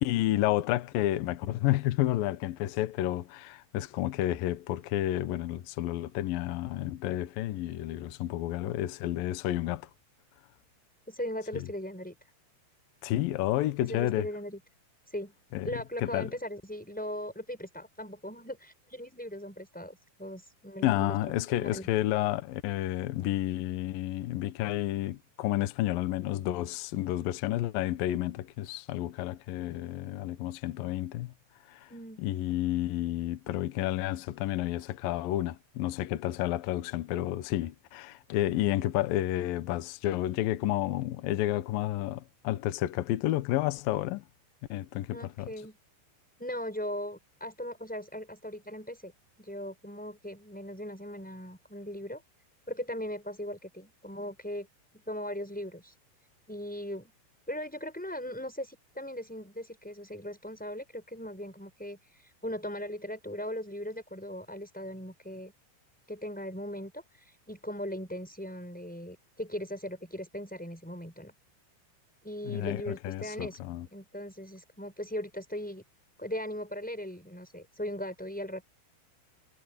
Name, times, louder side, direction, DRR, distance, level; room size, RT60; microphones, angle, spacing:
voice 1, 0.0-9.9 11.5-11.7 13.0-14.3 15.5-15.7 16.0-16.3 20.8-31.3 31.7-31.9 32.2-44.2 44.7-45.5 72.4-73.9, left 14 dB, 85° left, 2.0 m, -30 dB
voice 2, 11.1-12.1 13.8-14.6 15.1-15.3 15.6-21.3 21.6-21.9 31.9-32.2 45.1-45.8 46.4-49.1 49.4-52.2 52.7-54.7 54.9-56.0 56.5-57.1 57.5-65.5 66.1-71.3 72.2-75.8 76.2-78.6, equal, ahead, 5.7 m, -39 dB
omnidirectional pair, 5.7 m